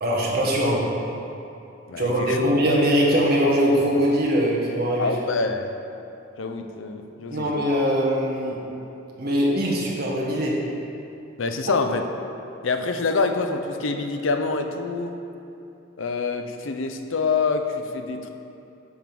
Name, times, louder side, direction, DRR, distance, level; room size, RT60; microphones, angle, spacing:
voice 1, 0.0-0.8 2.0-5.1 7.3-8.6 9.2-10.6, equal, 50° right, -3 dB, 1.5 m, -22 dB
voice 2, 1.9-2.4 5.0-5.7 6.4-7.6 11.4-12.0 12.6-15.2 16.0-18.3, left 4 dB, 70° left, 6 dB, 0.6 m, -26 dB
10.5 x 3.6 x 6.1 m, 2.7 s
head